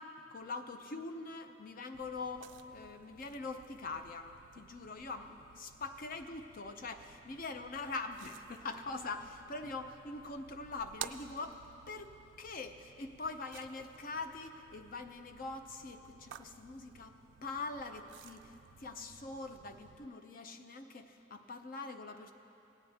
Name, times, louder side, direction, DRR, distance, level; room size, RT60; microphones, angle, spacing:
voice 1, 0.0-22.3, left 3 dB, 50° left, 7 dB, 0.6 m, -43 dB
sound 1, 1.9-20.1, right 9 dB, 70° right, 0.3 m, -54 dB
17.5 x 8.2 x 3.5 m, 2.8 s
head